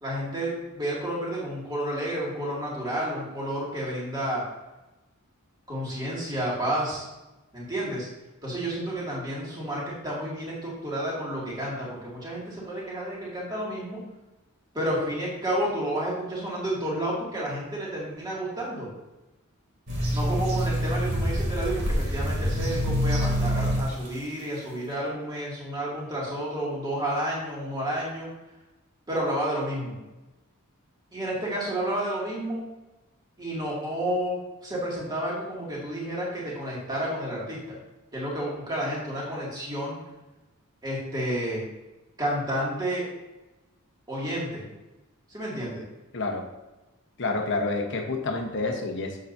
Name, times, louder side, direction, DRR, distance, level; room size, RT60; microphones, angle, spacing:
voice 1, 0.0-4.4 5.7-7.1 7.5-8.1 8.4-14.0 14.7-18.9 20.1-28.3 29.1-30.0 31.1-32.6 33.4-37.8 38.1-40.0 40.8-41.6 42.2-43.0 44.1-44.6 45.3-45.8, right 1 dB, 20° right, -6 dB, 2.3 m, -30 dB
sound 1, 19.9-23.8 24.0-24.1, equal, 80° right, 2.6 m, -26 dB
voice 2, 46.1-46.4 47.2-49.2, left 3 dB, 55° left, 2 dB, 1.1 m, -28 dB
7.9 x 7.0 x 2.7 m, 1.1 s
head